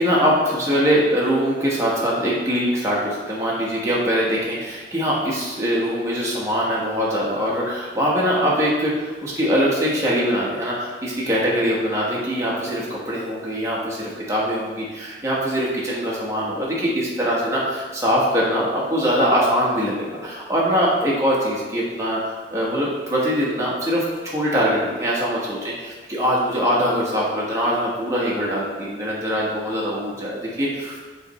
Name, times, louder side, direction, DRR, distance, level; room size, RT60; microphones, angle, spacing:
voice 1, 0.0-24.0 24.3-31.0, equal, 15° right, -6 dB, 1.1 m, -22 dB
6.8 x 3.3 x 4.2 m, 1.3 s
head